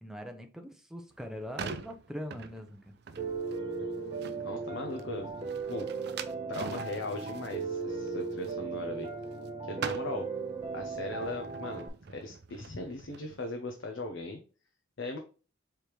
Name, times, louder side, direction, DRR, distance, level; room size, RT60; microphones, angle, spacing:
voice 1, 0.0-2.9, equal, ahead, 4 dB, 0.6 m, -42 dB
sound 1, 1.1-9.5 9.7-13.4, right 5 dB, 55° right, 0.4 m, -44 dB
Piano, 3.2-11.9, right 4 dB, 30° right, 0.8 m, -37 dB
voice 2, 4.4-5.3 5.7-5.9 6.5-9.1 9.6-10.3 10.7-11.9 12.1-14.4 15.0-15.2, left 2 dB, 70° left, 4 dB, 0.7 m, -38 dB
4.7 x 3.5 x 3.0 m, 0.36 s
head